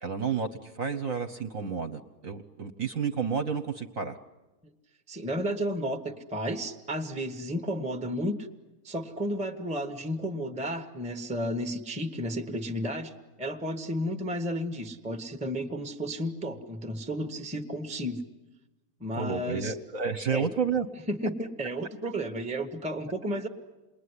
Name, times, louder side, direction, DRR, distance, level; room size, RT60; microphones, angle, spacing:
voice 1, 0.0-4.2 19.1-20.9, right 6 dB, 50° right, 6 dB, 1.2 m, -31 dB
voice 2, 5.1-8.4 8.8-13.1 13.4-18.2 19.0-19.8 20.3-20.5 21.1-23.5, equal, 5° right, 8 dB, 0.9 m, -32 dB
28.0 x 21.0 x 9.8 m, 1.1 s
omnidirectional pair, 2.2 m